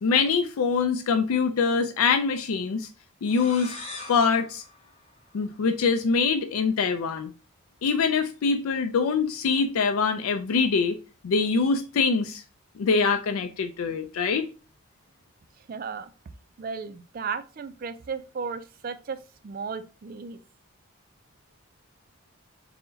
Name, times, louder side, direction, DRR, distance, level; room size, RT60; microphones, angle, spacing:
voice 1, 0.0-2.9 3.2-3.8 4.1-4.6 5.3-7.3 7.8-11.0 11.2-12.4 12.8-14.5, left 5 dB, 90° left, 0.4 m, -24 dB
sound 1, 3.2-5.8, left 3 dB, 30° left, 0.9 m, -43 dB
voice 2, 15.6-16.1 16.6-19.2 19.4-20.4, right 5 dB, 40° right, 0.3 m, -35 dB
4.5 x 2.1 x 3.8 m
head